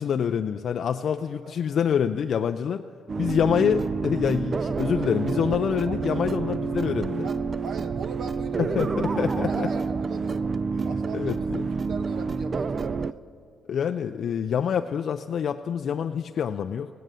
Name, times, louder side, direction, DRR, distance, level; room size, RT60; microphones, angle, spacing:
voice 1, 0.0-2.8 3.2-7.3 8.6-9.7 11.1-11.6 13.7-16.9, left 8 dB, 60° left, 7 dB, 0.4 m, -26 dB
sound 1, 3.1-13.1, right 4 dB, 35° right, 0.3 m, -28 dB
voice 2, 5.9-6.2 7.2-8.8 9.2-10.5 10.8-13.2, right 4 dB, 65° right, 8 dB, 1.1 m, -41 dB
17.0 x 9.3 x 6.6 m, 2.4 s
cardioid pair, 90°, 0 cm